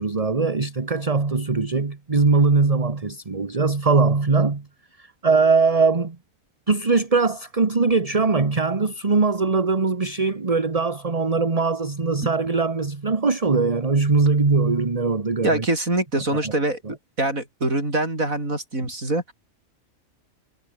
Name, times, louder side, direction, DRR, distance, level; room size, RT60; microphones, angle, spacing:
voice 1, 0.0-4.7 5.0-6.2 6.7-15.6 16.2-16.5, right 4 dB, 25° right, 1.4 m, -21 dB
voice 2, 15.4-16.8 17.2-19.3, right 2 dB, 80° right, 8.0 m, -24 dB
omnidirectional pair, 1.4 m